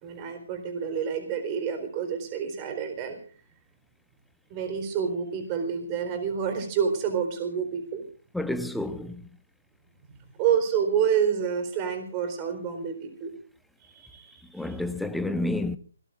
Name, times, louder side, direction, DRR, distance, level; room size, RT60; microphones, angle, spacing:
voice 1, 0.0-3.2 4.5-8.0 10.4-13.3 13.9-14.7, right 7 dB, 25° right, 4.1 m, -28 dB
voice 2, 8.3-9.3 14.5-15.8, left 1 dB, ahead, 0.9 m, -30 dB
26.5 x 18.5 x 2.5 m
figure-of-eight pair, 140°, 0 cm